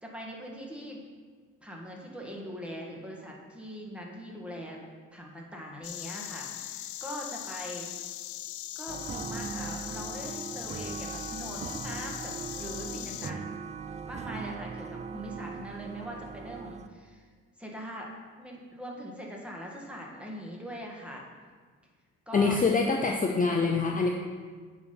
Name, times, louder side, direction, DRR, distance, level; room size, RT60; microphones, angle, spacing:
voice 1, 0.0-1.0 1.6-4.8 5.1-7.9 8.8-13.5 14.1-17.2 17.6-18.1 18.4-21.2 22.3-22.6, equal, 5° right, -2 dB, 1.7 m, -41 dB
Insect, 5.8-13.3, left 13 dB, 75° left, 0.4 m, -40 dB
sound 1, 8.9-16.9, right 6 dB, 25° right, 0.4 m, -39 dB
voice 2, 22.3-24.1, left 4 dB, 25° left, 2 dB, 0.6 m, -25 dB
9.1 x 4.2 x 5.6 m, 1.5 s
cardioid pair, 90°, 30 cm